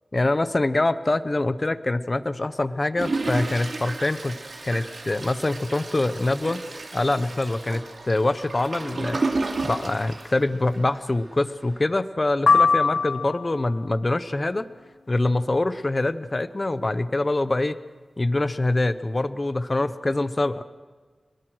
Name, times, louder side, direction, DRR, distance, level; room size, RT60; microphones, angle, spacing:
voice 1, 0.1-4.4 4.6-6.6 6.9-9.2 9.6-14.6 15.1-17.8 18.2-20.6, left 2 dB, 35° left, 13 dB, 0.9 m, -24 dB
Toilet flush, 3.0-11.0 11.5-11.6 11.8-11.9, right 3 dB, 60° right, 3.3 m, -32 dB
sound 1, 12.5-13.7, left 5 dB, 85° left, 0.6 m, -20 dB
29.5 x 20.0 x 6.3 m, 1.5 s
wide cardioid pair, 70°, 0 cm